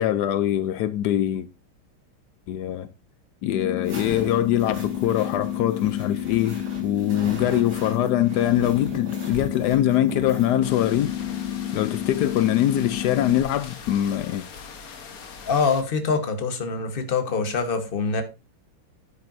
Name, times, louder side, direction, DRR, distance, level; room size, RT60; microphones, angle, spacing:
voice 1, 0.0-1.5 2.5-2.9 3.4-11.1 11.7-14.5, left 12 dB, 90° left, 0.9 m, -23 dB
sound 1, 3.4-13.4, left 11 dB, 65° left, 1.5 m, -30 dB
sound 2, 3.8-10.6, right 1 dB, 75° right, 6.0 m, -40 dB
sound 3, 10.6-15.8, left 5 dB, 50° left, 1.3 m, -41 dB
voice 2, 15.4-18.2, left 5 dB, 35° left, 1.1 m, -24 dB
9.5 x 9.5 x 2.6 m
omnidirectional pair, 2.4 m